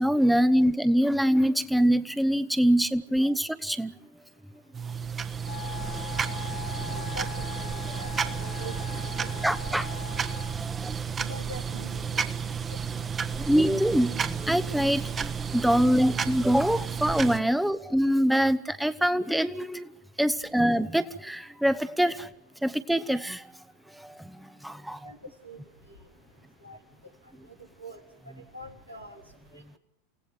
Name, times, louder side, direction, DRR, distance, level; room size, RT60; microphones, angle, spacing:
voice 1, 0.0-3.9 9.4-9.9 10.6-10.9 13.4-19.9 20.2-22.3 22.6-23.5 23.9-25.1, equal, 5° right, 13 dB, 0.9 m, -24 dB
sound 1, 4.7-17.4, right 6 dB, 20° right, 1.4 m, -32 dB
Wind instrument woodwind instrument, 5.4-10.7, left 18 dB, 55° left, 1.5 m, -41 dB
voice 2, 6.9-8.8 9.2-9.4 9.8-9.9 11.2-12.5 25.0-25.2 25.4-25.6 25.9-26.0 26.6-26.8 27.8-28.0 28.3-29.2 29.5-29.6, right 1 dB, 90° right, 3 dB, 3.5 m, -44 dB
29.0 x 17.5 x 7.6 m, 0.80 s
figure-of-eight pair, 85°, 0 cm